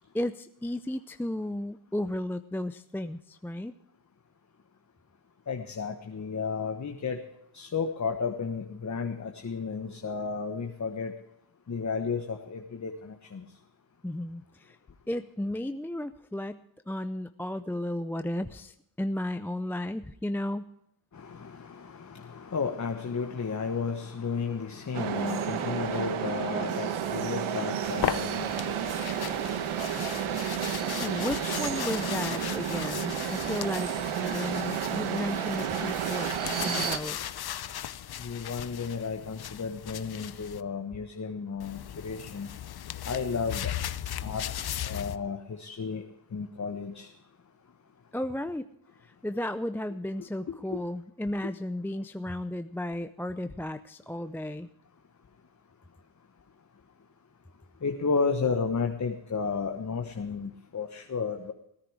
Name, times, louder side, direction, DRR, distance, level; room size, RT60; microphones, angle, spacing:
voice 1, 0.1-3.7 14.0-14.8 15.1-20.7 31.0-33.9 34.2-37.2 48.1-48.7 49.0-54.7, left 1 dB, 5° left, 10 dB, 0.5 m, -34 dB
voice 2, 5.5-7.2 7.5-11.1 11.7-13.4 21.1-29.0 38.2-42.5 43.0-43.7 44.2-46.0 46.3-47.1 50.7-50.8 51.4-51.5 57.8-61.5, left 5 dB, 35° left, 5 dB, 1.3 m, -33 dB
sound 1, 24.9-37.0, right 9 dB, 80° right, 1.3 m, -31 dB
sound 2, 27.8-40.6 41.6-45.2, left 10 dB, 50° left, 0.7 m, -37 dB
17.5 x 10.0 x 4.8 m, 0.80 s
cardioid pair, 65°, 48 cm